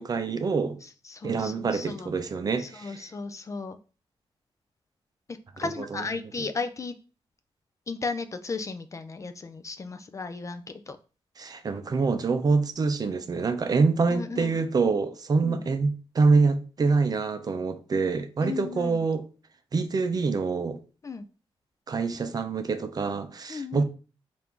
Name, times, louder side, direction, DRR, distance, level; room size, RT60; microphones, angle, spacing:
voice 1, 0.0-0.8 1.2-3.0 5.6-6.0 11.4-19.2 19.7-20.8 21.9-23.8, right 4 dB, 40° right, 0.5 m, -26 dB
voice 2, 0.8-2.1 2.6-3.8 5.3-7.0 7.9-11.0 14.1-14.5 15.4-15.6 18.4-19.0 21.0-21.3 23.5-23.8, left 4 dB, 30° left, 0.3 m, -35 dB
4.4 x 2.5 x 3.5 m
wide cardioid pair, 125°, 10 cm